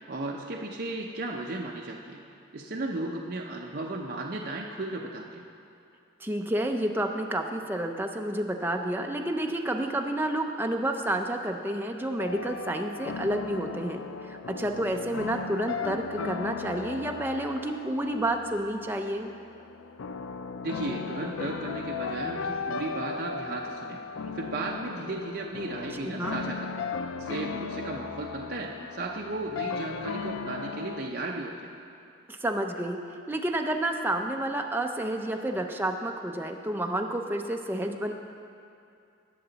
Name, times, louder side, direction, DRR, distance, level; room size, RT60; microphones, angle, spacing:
voice 1, 0.1-2.2 2.5-5.4 20.6-24.0 24.3-26.7 27.2-31.7, right 2 dB, 50° right, -1 dB, 0.6 m, -35 dB
voice 2, 6.2-19.3 26.0-26.4 32.3-33.0 33.3-38.1, right 1 dB, 10° right, 3 dB, 0.5 m, -30 dB
sound 1, 12.2-31.1, left 5 dB, 85° left, 0.4 m, -37 dB
19.0 x 6.7 x 4.0 m, 2.5 s
head